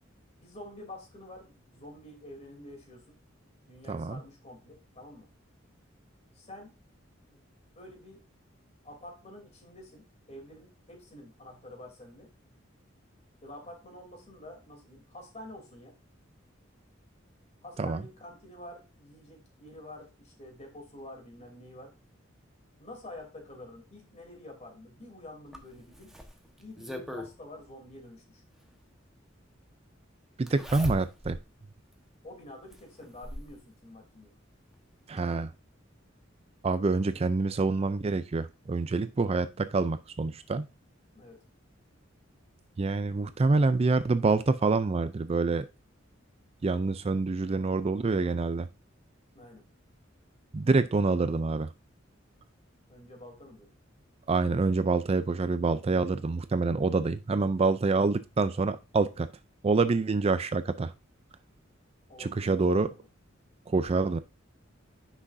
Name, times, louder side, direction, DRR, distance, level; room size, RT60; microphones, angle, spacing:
voice 1, 0.4-3.2 3.6-5.3 6.3-6.8 7.3-7.4 7.7-8.2 8.8-12.3 13.4-16.0 17.6-21.9 22.8-26.1 26.6-28.4 32.2-34.3 41.1-41.4 49.3-49.6 52.9-53.7 62.1-63.1, left 1 dB, 35° left, 2 dB, 3.1 m, -48 dB
Zipper (clothing), 25.5-27.3 28.7-28.8 30.5-31.4 31.9-32.0 32.7-33.5 34.7-34.8 35.2-35.3, equal, ahead, 1.2 m, -39 dB
voice 2, 30.4-31.4 35.1-35.5 36.6-40.6 42.8-45.7 46.6-48.7 50.5-51.7 54.3-59.3 59.6-60.9 62.2-62.9 63.7-64.2, right 3 dB, 30° right, 12 dB, 0.4 m, -26 dB
9.8 x 6.1 x 2.6 m, 0.28 s
head